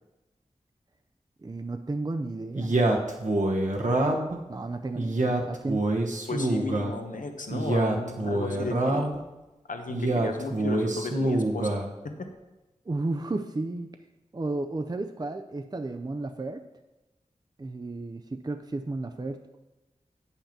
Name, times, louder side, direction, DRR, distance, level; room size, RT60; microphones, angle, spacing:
voice 1, 1.4-2.8 4.5-5.9 12.9-13.9 14.3-16.6 17.6-19.4, right 2 dB, 30° right, 7 dB, 0.5 m, -33 dB
Male speech man speaking, 2.5-4.4 4.9-6.9 7.5-9.2 9.9-11.9, right 2 dB, 70° right, 1.1 m, -26 dB
voice 2, 6.3-9.1 9.7-11.8 12.0-12.3, left 3 dB, 85° left, 5 dB, 0.9 m, -35 dB
8.7 x 5.7 x 5.9 m, 1.0 s
wide cardioid pair, 60°, 13 cm